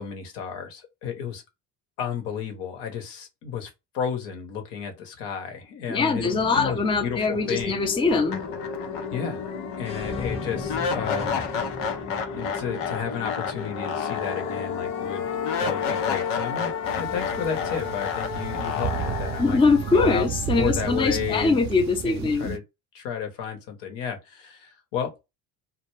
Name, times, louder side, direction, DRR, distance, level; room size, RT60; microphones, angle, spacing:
voice 1, 0.0-1.4 2.0-7.9 9.1-9.5 9.8-11.4 12.3-15.3 15.6-19.6 19.9-20.3 20.5-21.6 22.0-22.6 22.9-25.2, left 7 dB, 70° left, 0.9 m, -32 dB
voice 2, 5.9-8.4 19.4-22.6, left 4 dB, 10° left, 0.5 m, -22 dB
sound 1, 6.2-20.8, left 3 dB, 35° left, 1.0 m, -37 dB
sound 2, 7.6-7.7 8.1-21.1, left 7 dB, 85° left, 0.6 m, -31 dB
sound 3, 16.8-22.6, right 9 dB, 40° right, 0.4 m, -33 dB
2.2 x 2.1 x 3.1 m
hypercardioid pair, 65°, 44 cm